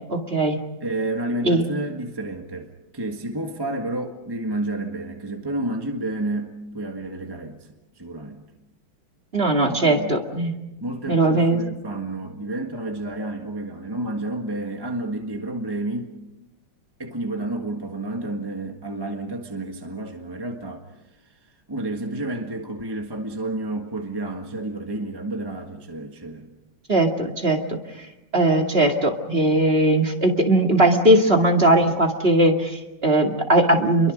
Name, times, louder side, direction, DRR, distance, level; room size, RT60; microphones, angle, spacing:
voice 1, 0.1-0.6 1.4-1.6 9.3-10.5 11.1-11.6 26.9-28.1 28.3-34.1, right 1 dB, 30° right, 2 dB, 2.4 m, -19 dB
voice 2, 0.8-8.4 9.7-10.1 10.8-16.1 17.0-26.5, right 2 dB, 10° right, 3 dB, 1.5 m, -30 dB
29.5 x 23.0 x 5.3 m, 0.95 s
omnidirectional pair, 2.3 m